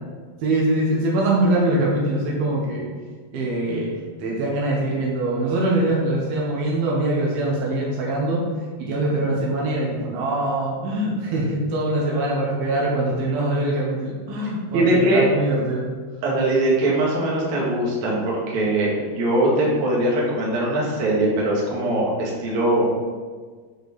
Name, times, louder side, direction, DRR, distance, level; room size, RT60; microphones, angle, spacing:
voice 1, 0.4-2.9 3.3-3.9 4.2-8.4 8.8-15.9, right 1 dB, 75° right, -4 dB, 3.2 m, -23 dB
voice 2, 14.7-15.3 16.2-22.9, right 1 dB, 55° right, -4 dB, 2.7 m, -21 dB
9.0 x 5.1 x 4.3 m, 1.5 s
omnidirectional pair, 4.5 m